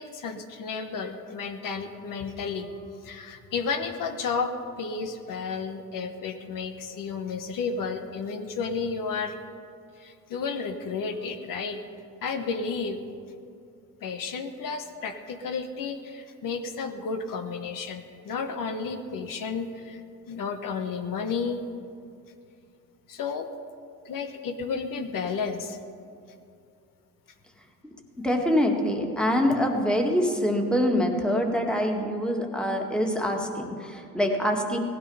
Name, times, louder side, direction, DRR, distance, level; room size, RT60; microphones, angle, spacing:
voice 1, 0.0-2.7 3.0-9.4 10.0-11.8 12.2-13.0 14.0-20.0 20.3-21.6 23.1-23.5 24.0-25.8, left 5 dB, 70° left, 6 dB, 1.1 m, -32 dB
voice 2, 28.2-34.8, equal, 5° left, 1 dB, 2.0 m, -25 dB
17.5 x 12.0 x 5.5 m, 2.5 s
cardioid pair, 90°, 34 cm